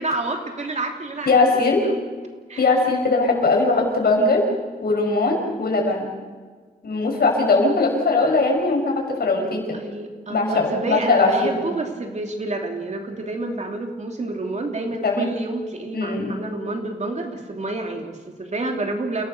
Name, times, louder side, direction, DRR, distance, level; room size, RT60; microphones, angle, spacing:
voice 1, 0.0-1.3 1.8-1.9 2.5-2.6 9.7-19.3, right 2 dB, 45° right, 3 dB, 3.0 m, -29 dB
voice 2, 1.3-1.9 2.6-4.5 4.8-6.1 6.8-9.8 10.3-11.6 15.0-15.3 15.9-16.4, left 3 dB, 75° left, 1 dB, 5.9 m, -20 dB
29.0 x 17.5 x 6.9 m, 1.5 s
wide cardioid pair, 160°, 16 cm